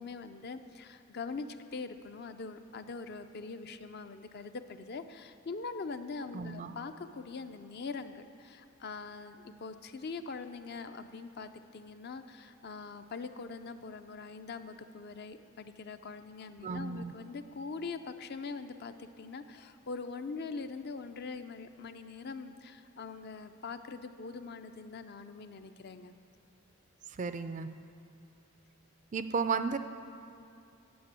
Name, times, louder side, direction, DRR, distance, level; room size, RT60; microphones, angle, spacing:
voice 1, 0.0-1.5 1.7-26.1, left 4 dB, 50° left, 9 dB, 0.5 m, -43 dB
voice 2, 6.3-6.8 16.6-17.1 27.1-27.7 29.1-29.8, right 5 dB, 35° right, 10 dB, 0.4 m, -33 dB
8.7 x 7.4 x 8.3 m, 2.6 s
head